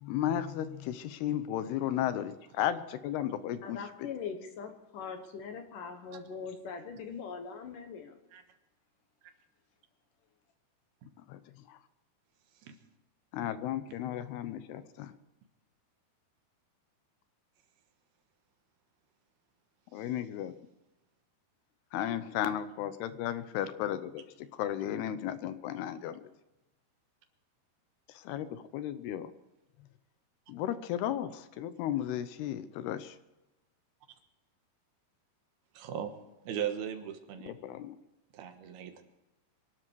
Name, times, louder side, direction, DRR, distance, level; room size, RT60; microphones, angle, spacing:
voice 1, 0.0-4.1 11.3-11.8 13.3-15.1 19.9-20.5 21.9-26.3 28.1-29.3 30.5-33.2 37.4-38.0, left 11 dB, 80° left, 12 dB, 2.7 m, -34 dB
voice 2, 3.6-8.2, left 6 dB, 60° left, 6 dB, 2.5 m, -41 dB
voice 3, 35.7-36.1 36.5-37.6 38.3-39.0, right 9 dB, 70° right, 7 dB, 3.0 m, -38 dB
25.0 x 12.0 x 4.7 m, 1.0 s
omnidirectional pair, 4.8 m